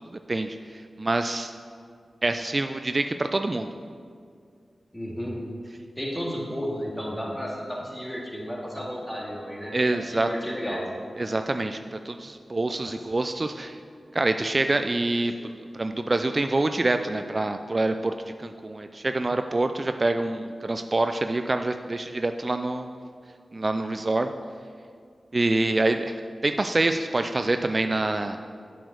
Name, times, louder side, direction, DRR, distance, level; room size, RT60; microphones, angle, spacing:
voice 1, 0.1-1.5 2.2-3.8 9.7-10.3 11.2-13.8 14.1-22.9 23.5-24.3 25.3-28.4, right 2 dB, 45° right, 7 dB, 0.3 m, -26 dB
voice 2, 4.9-5.4 6.0-10.8 12.8-13.0, equal, 10° left, -3 dB, 2.1 m, -33 dB
7.4 x 5.1 x 6.2 m, 2.2 s
cardioid pair, 40°, 0 cm